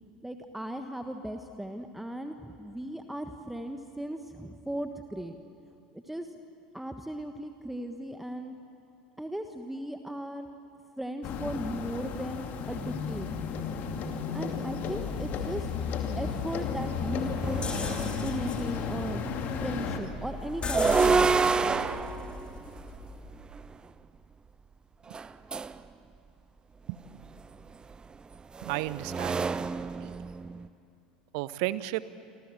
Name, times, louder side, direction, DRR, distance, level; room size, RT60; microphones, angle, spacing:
voice 1, 0.2-5.4 5.9-6.3 6.7-8.5 9.2-10.5 11.0-13.5 14.3-15.7 16.1-17.6 18.2-19.2 19.6-21.7, right 1 dB, 5° right, 6 dB, 1.4 m, -37 dB
sound 1, 11.2-20.0, left 5 dB, 45° left, 2.6 m, -33 dB
sound 2, 16.2-16.3 16.7-18.7 20.5-23.8 25.1-25.8 27.2-30.7, right 4 dB, 20° right, 0.8 m, -29 dB
sound 3, 17.6-23.4, left 4 dB, 25° left, 3.4 m, -38 dB
voice 2, 28.6-30.1 31.3-32.0, right 17 dB, 55° right, 16 dB, 0.9 m, -34 dB
29.0 x 25.5 x 7.6 m, 2.8 s
figure-of-eight pair, 75°, 4 cm